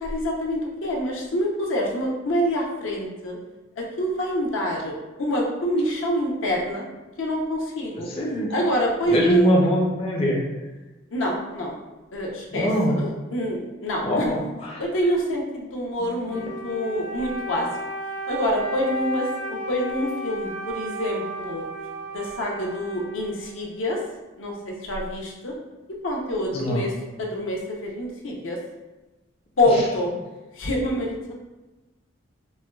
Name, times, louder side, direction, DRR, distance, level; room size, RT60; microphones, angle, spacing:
voice 1, 0.0-3.4 3.8-4.9 5.2-6.8 7.2-8.1 8.5-9.5 11.1-11.8 12.1-14.3 14.8-17.7 18.3-21.6 22.1-24.0 24.4-25.5 26.0-26.9 27.2-28.6 29.6-30.1 30.6-31.1, equal, 75° left, -1 dB, 0.6 m, -26 dB
voice 2, 8.1-8.5 9.1-10.4 12.5-12.9 14.0-14.8 16.3-16.4 26.5-26.8, equal, 30° left, -2 dB, 0.4 m, -23 dB
Wind instrument woodwind instrument, 16.2-23.8, right 1 dB, 75° right, 0.9 m, -34 dB
4.3 x 2.2 x 2.2 m, 1.1 s
head